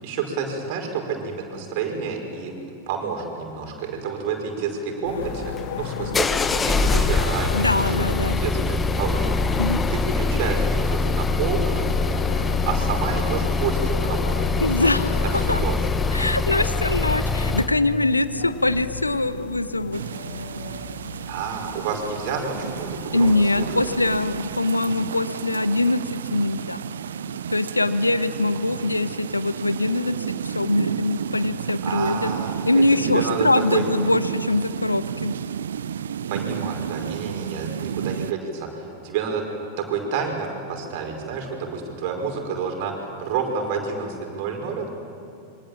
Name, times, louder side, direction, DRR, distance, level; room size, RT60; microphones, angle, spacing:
voice 1, 0.0-2.5 2.9-9.6 9.9-11.8 12.7-14.7 15.2-15.8 21.3-23.7 31.8-32.5 33.1-33.8 36.3-39.4 39.8-44.9, right 5 dB, 45° right, 2 dB, 5.3 m, -29 dB
sound 1, 5.0-24.2, left 7 dB, 60° left, 1.4 m, -36 dB
sound 2, 5.2-17.7, left 3 dB, 15° left, 1.1 m, -24 dB
voice 2, 7.5-8.4 9.6-9.8 14.6-15.6 16.1-20.0 23.1-26.8 27.5-30.1 30.4-32.3 32.7-35.3, left 2 dB, 85° left, 13 dB, 0.9 m, -23 dB
sound 3, 19.9-38.3, right 8 dB, 65° right, 0.5 m, -32 dB
27.0 x 24.5 x 7.5 m, 2.4 s
figure-of-eight pair, 90°, 0 cm